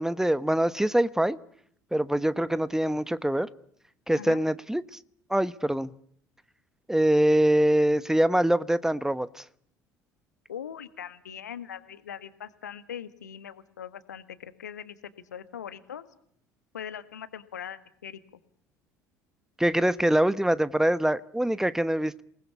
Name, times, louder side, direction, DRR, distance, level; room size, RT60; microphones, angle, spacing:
voice 1, 0.0-1.4 1.9-3.5 4.1-5.0 5.3-5.9 6.9-9.4 19.6-22.2, right 1 dB, 5° right, 1.1 m, -24 dB
voice 2, 10.5-15.0 15.3-16.0 16.7-18.2, left 9 dB, 80° left, 1.5 m, -41 dB
27.5 x 20.0 x 8.5 m
figure-of-eight pair, 60°, 9 cm